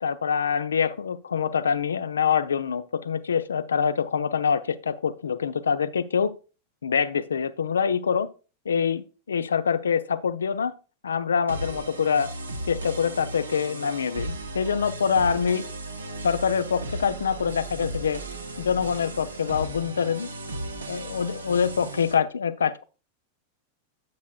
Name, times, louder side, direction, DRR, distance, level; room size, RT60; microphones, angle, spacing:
voice 1, 0.0-6.3 6.8-8.3 8.7-10.7 11.0-12.3 12.7-15.6 16.2-18.2 18.6-20.3 20.9-22.8, left 6 dB, 70° left, 15 dB, 0.5 m, -25 dB
sound 1, 11.5-22.1, right 2 dB, 75° right, 1.0 m, -36 dB
9.3 x 8.4 x 2.3 m, 0.34 s
figure-of-eight pair, 90°, 0 cm